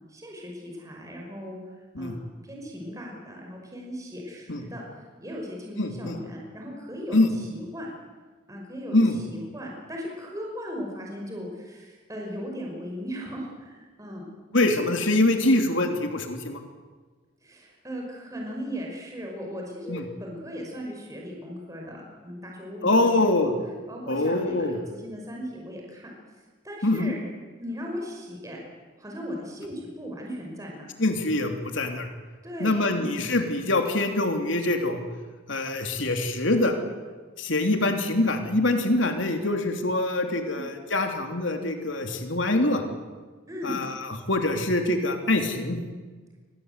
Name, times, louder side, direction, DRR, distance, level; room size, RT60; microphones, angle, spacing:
voice 1, 0.1-1.6 2.0-4.8 5.2-7.9 8.5-9.0 9.3-14.3 17.4-23.5 23.9-26.1 26.6-27.2 27.6-28.6 29.0-30.9 32.4-33.1 40.5-40.6 43.5-43.8, equal, 15° right, -1 dB, 5.6 m, -37 dB
voice 2, 5.8-6.2 7.1-7.3 8.9-9.1 14.5-16.6 19.9-20.0 22.8-23.5 24.1-24.8 26.8-27.1 31.0-32.1 32.6-35.0 35.5-36.7 37.4-42.8 43.6-43.9 44.3-45.8, left 2 dB, 75° left, 4 dB, 3.2 m, -24 dB
28.0 x 21.5 x 8.2 m, 1.4 s
head